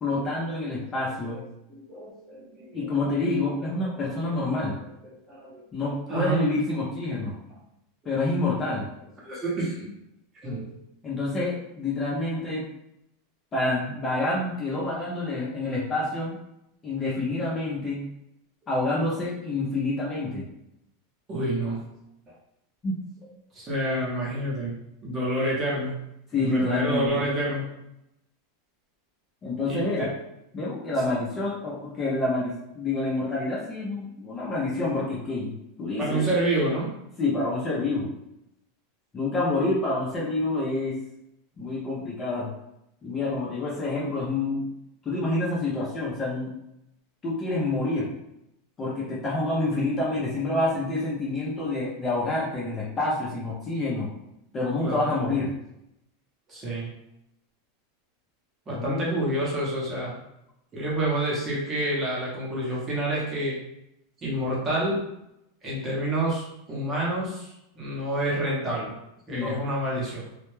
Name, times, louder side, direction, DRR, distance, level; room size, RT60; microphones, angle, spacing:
voice 1, 0.0-1.4 2.7-4.8 5.7-7.4 8.0-8.9 11.0-12.7 13.5-16.4 16.8-18.1 18.7-20.5 22.8-23.0 26.3-27.2 29.4-30.1 30.5-36.3 37.2-38.1 39.1-41.0 41.6-42.5 43.0-44.6 45.0-46.5 47.2-48.1 48.8-54.1 54.5-55.5 58.7-59.1 69.3-69.6, left 2 dB, 15° left, -6 dB, 0.5 m, -27 dB
voice 2, 0.7-1.4 1.7-2.8 3.7-4.3 5.0-6.4 8.4-8.6 9.2-9.9 10.4-10.7 21.3-21.8 23.5-25.9 26.4-27.7 29.6-30.1 36.0-36.9 48.9-49.0 54.8-55.1 56.5-56.9 58.7-60.2 60.7-63.6 64.2-65.0 65.6-69.0 69.3-70.3, right 1 dB, 20° right, -5 dB, 0.7 m, -29 dB
2.1 x 2.0 x 3.0 m, 0.83 s
supercardioid pair, 170°, 0 cm